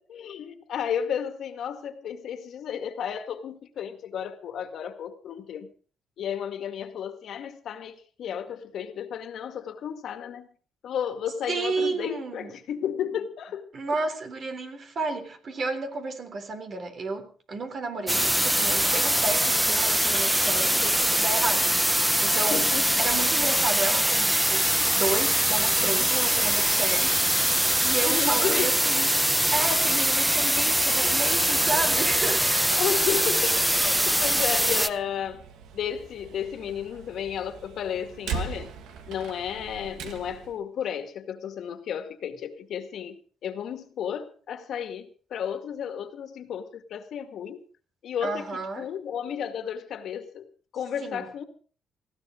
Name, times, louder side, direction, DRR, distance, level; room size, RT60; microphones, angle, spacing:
voice 1, 0.1-5.7 6.2-10.5 10.8-14.0 22.5-23.1 28.0-28.7 31.0-31.2 32.7-35.4 35.7-38.7 39.1-47.6 48.0-50.5 50.7-51.4, left 8 dB, 70° left, 2.0 m, -33 dB
voice 2, 11.5-12.6 13.7-21.7 22.2-22.6 23.0-24.7 25.0-27.2 27.8-29.1 29.5-32.5 48.2-48.9 51.0-51.2, right 3 dB, 50° right, 3.5 m, -32 dB
sound 1, 18.1-34.9, right 1 dB, 5° right, 1.0 m, -23 dB
Slam, 32.1-40.6, right 6 dB, 85° right, 2.0 m, -40 dB
19.0 x 15.5 x 3.9 m
cardioid pair, 90°, 0 cm